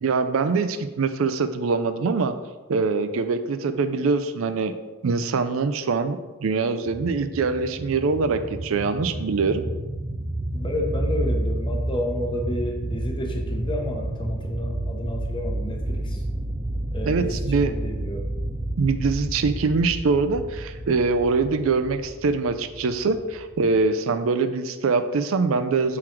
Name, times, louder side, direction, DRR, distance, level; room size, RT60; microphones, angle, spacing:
voice 1, 0.0-2.3 2.7-4.7 5.0-9.6 17.1-17.7 18.8-26.0, right 4 dB, 80° right, 10 dB, 0.4 m, -23 dB
sound 1, 6.9-23.9, right 1 dB, 25° right, 0.5 m, -30 dB
voice 2, 10.5-16.2 16.9-18.3, left 1 dB, 25° left, 1 dB, 0.9 m, -31 dB
6.2 x 3.9 x 4.5 m, 1.2 s
head